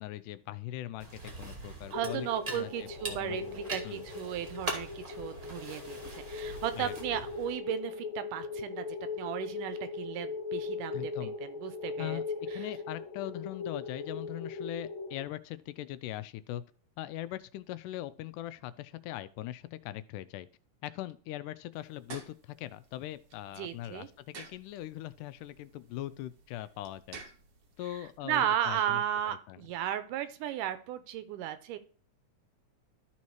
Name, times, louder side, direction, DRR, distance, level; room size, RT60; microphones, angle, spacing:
voice 1, 0.0-2.3 2.5-3.6 3.8-4.1 6.7-7.2 10.9-11.3 12.0-12.2 12.5-16.6 17.0-20.5 20.8-27.2 27.8-29.6, left 14 dB, 85° left, 14 dB, 2.1 m, -41 dB
sound 1, 1.0-7.6, right 2 dB, 25° right, 1.1 m, -42 dB
sound 2, 1.9-15.3, left 4 dB, 70° left, 2.0 m, -39 dB
voice 2, 1.9-8.9 9.2-12.2 23.6-24.1 28.2-31.8, right 11 dB, 90° right, 11 dB, 2.3 m, -35 dB
sound 3, 21.7-28.2, right 5 dB, 60° right, 1.1 m, -53 dB
12.5 x 4.2 x 4.7 m, 0.41 s
omnidirectional pair, 3.6 m